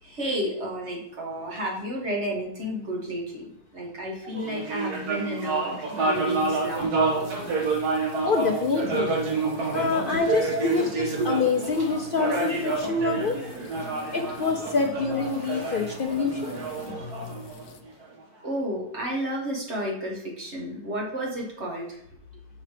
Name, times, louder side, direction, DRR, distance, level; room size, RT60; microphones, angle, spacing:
voice 1, 0.0-6.9 10.2-10.7 11.2-11.3 14.3-14.4 18.4-22.0, right 1 dB, 45° right, -2 dB, 1.8 m, -32 dB
sound 1, 4.3-18.0, right 3 dB, 80° right, 1.9 m, -29 dB
sound 2, 6.1-17.8, left 4 dB, 65° left, 1.0 m, -44 dB
voice 2, 8.2-9.1 9.7-13.4 14.1-16.5, left 4 dB, 80° left, 2 dB, 0.4 m, -26 dB
5.7 x 5.6 x 4.9 m, 0.75 s
omnidirectional pair, 1.6 m